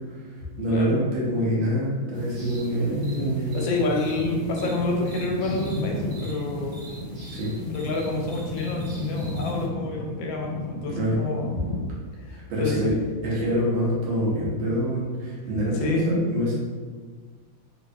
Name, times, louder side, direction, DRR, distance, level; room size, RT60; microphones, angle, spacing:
voice 1, 0.6-3.6 7.3-7.5 10.9-11.2 12.3-12.9 13.2-16.6, equal, 90° right, -6 dB, 1.6 m, -25 dB
sound 1, 2.1-9.7, right 2 dB, 60° right, 1.2 m, -43 dB
voice 2, 3.5-6.8 7.7-11.6 12.3-13.0 15.7-16.2, left 2 dB, 85° left, 0 dB, 1.4 m, -28 dB
sound 2, 4.0-11.8, left 1 dB, 65° left, 1.0 m, -33 dB
3.8 x 2.4 x 2.3 m, 1.5 s
omnidirectional pair, 2.1 m